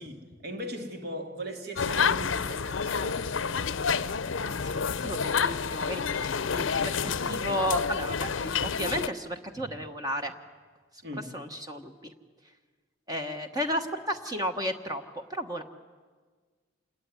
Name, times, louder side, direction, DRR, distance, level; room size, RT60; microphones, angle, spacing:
voice 1, 0.0-3.3 11.0-11.4, right 1 dB, 55° right, 4 dB, 2.8 m, -39 dB
sound 1, 1.8-9.1, left 6 dB, 80° left, 0.7 m, -29 dB
voice 2, 4.4-10.3 11.3-12.1 13.1-15.0 15.3-15.6, equal, 20° right, 6 dB, 1.1 m, -33 dB
27.5 x 21.0 x 9.6 m, 1.5 s
head